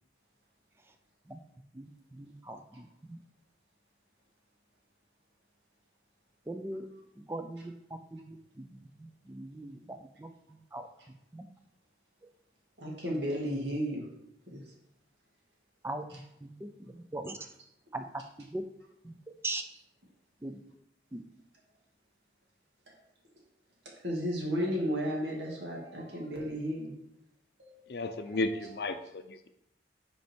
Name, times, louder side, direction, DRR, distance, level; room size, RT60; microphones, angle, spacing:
voice 1, 1.7-3.2 6.5-6.9 7.1-10.9 11.3-11.5 12.2-12.3 15.8-17.4 17.9-18.6 19.0-19.6 20.4-20.6 21.1-21.3, right 2 dB, 15° right, 0.4 m, -41 dB
voice 2, 12.8-14.0 14.5-14.6 24.0-26.9 27.6-28.6, equal, 85° right, 1.9 m, -34 dB
voice 3, 27.9-29.5, left 2 dB, 65° left, 0.5 m, -34 dB
5.7 x 4.4 x 4.4 m
head